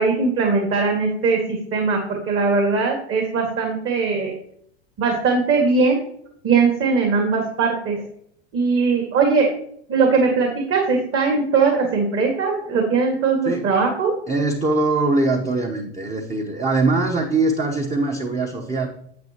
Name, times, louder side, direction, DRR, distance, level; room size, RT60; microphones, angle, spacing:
voice 1, 0.0-4.3 5.0-6.0 6.4-8.0 8.5-9.5 9.9-14.1, right 4 dB, 40° right, 2 dB, 1.8 m, -20 dB
voice 2, 14.3-18.9, right 3 dB, 20° right, 2 dB, 0.9 m, -22 dB
9.5 x 7.6 x 2.9 m, 0.67 s
hypercardioid pair, 110°, 33 cm